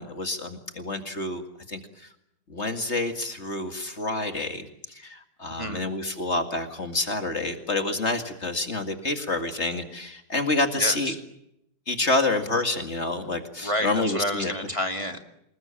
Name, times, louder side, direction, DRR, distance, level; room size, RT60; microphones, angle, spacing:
voice 1, 0.0-1.4 1.7-2.1 2.5-11.1 11.9-14.5, left 2 dB, 40° left, 6 dB, 2.4 m, -28 dB
voice 2, 10.8-11.2 13.6-15.2, equal, 20° right, 5 dB, 2.2 m, -29 dB
28.0 x 20.0 x 8.8 m, 0.81 s
omnidirectional pair, 1.8 m